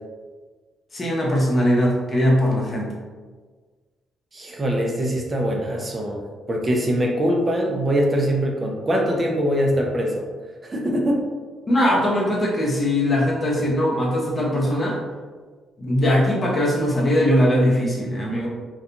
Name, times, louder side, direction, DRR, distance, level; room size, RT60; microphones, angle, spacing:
voice 1, 0.9-2.9 11.7-15.0 15.8-18.5, equal, 35° left, -3 dB, 0.7 m, -20 dB
voice 2, 4.3-6.2 6.5-10.2 10.6-11.2, equal, 30° right, -1 dB, 0.4 m, -22 dB
2.4 x 2.2 x 2.8 m, 1.4 s
cardioid pair, 80°, 0 cm